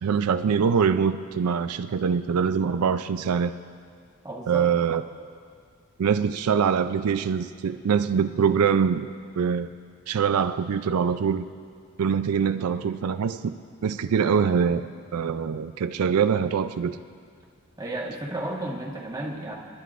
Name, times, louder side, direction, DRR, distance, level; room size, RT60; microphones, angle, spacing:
voice 1, 0.0-3.5 4.5-5.0 6.0-9.7 10.1-11.4 12.0-13.5 13.8-14.9 15.1-17.0, right 6 dB, 90° right, 10 dB, 0.4 m, -24 dB
voice 2, 4.2-4.6 17.8-19.5, right 1 dB, 15° right, -2 dB, 1.4 m, -32 dB
29.5 x 10.0 x 2.5 m, 2.1 s
head